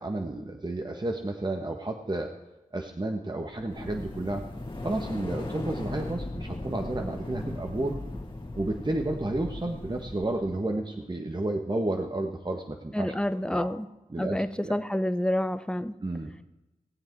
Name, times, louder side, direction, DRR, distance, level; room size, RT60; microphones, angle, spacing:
voice 1, 0.0-2.3 2.7-4.4 4.8-8.0 8.5-13.1 13.5-13.7 14.1-14.8 16.0-16.3, right 2 dB, 30° right, 3 dB, 1.4 m, -31 dB
sound 1, 3.5-10.5, left 2 dB, 35° left, 2.3 m, -37 dB
voice 2, 12.9-13.9 14.2-15.9, left 1 dB, 5° left, 10 dB, 0.8 m, -28 dB
19.0 x 7.5 x 4.6 m, 1.0 s
cardioid pair, 40°, 14 cm